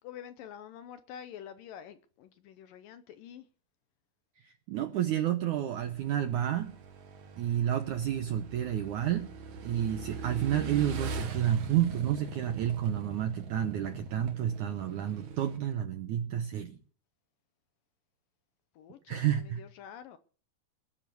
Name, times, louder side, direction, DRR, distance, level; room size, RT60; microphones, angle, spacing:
voice 1, 0.0-3.5 18.8-20.2, left 9 dB, 75° left, 2.2 m, -47 dB
voice 2, 4.4-6.8 7.4-9.3 9.6-16.8 19.1-19.6, right 10 dB, 75° right, 1.8 m, -30 dB
Motorcycle / Engine, 5.8-15.6, right 5 dB, 55° right, 2.8 m, -41 dB
20.0 x 9.5 x 6.8 m
omnidirectional pair, 4.6 m